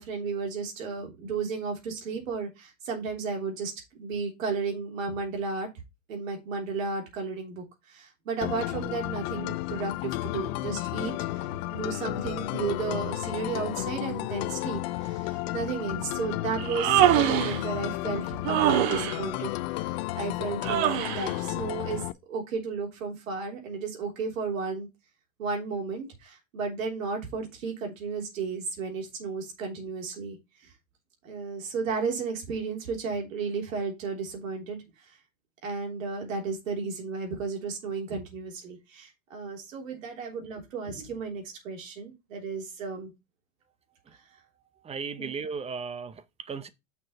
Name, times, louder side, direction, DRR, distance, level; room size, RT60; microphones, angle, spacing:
voice 1, 0.0-5.7 6.1-24.9 25.4-30.7 31.2-35.2 35.6-43.1 44.1-44.2 45.2-45.3, right 5 dB, 75° right, 3.3 m, -34 dB
sound 1, 8.4-22.1, left 16 dB, 50° left, 0.6 m, -32 dB
Human voice, 16.6-17.6 18.4-19.2 20.6-21.3, right 13 dB, 50° right, 1.1 m, -24 dB
voice 2, 44.8-46.7, right 5 dB, 15° right, 0.7 m, -36 dB
6.4 x 6.0 x 4.2 m
hypercardioid pair, 110°, 40 cm